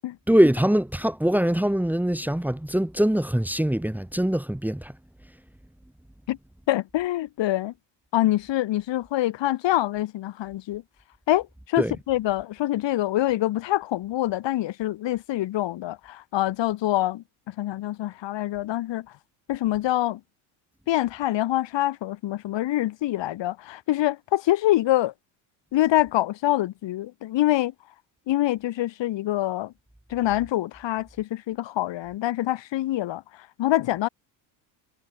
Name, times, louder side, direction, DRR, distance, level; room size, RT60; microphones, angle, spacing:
voice 1, 0.3-4.9 11.8-11.9, equal, 5° right, 2.5 m, -22 dB
voice 2, 6.7-7.7 8.1-10.8 11.3-19.1 19.5-20.2 20.9-25.1 25.7-27.7 28.3-29.7 30.1-33.2 33.6-34.1, left 15 dB, 60° left, 3.7 m, -25 dB
supercardioid pair, 100°, 48 cm